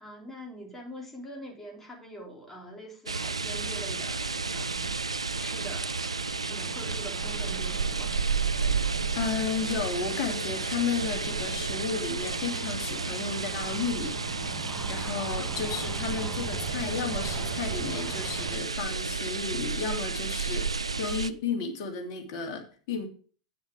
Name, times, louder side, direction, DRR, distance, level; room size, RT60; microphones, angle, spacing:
voice 1, 0.0-5.0 5.4-5.9 6.4-8.5, equal, 10° left, -1 dB, 3.7 m, -44 dB
sound 1, 3.1-21.3, right 4 dB, 90° right, 0.5 m, -31 dB
sound 2, 3.2-18.6, right 3 dB, 15° right, 1.2 m, -44 dB
voice 2, 9.1-23.1, left 6 dB, 50° left, 3 dB, 2.8 m, -33 dB
9.1 x 7.2 x 4.9 m, 0.40 s
figure-of-eight pair, 90°, 3 cm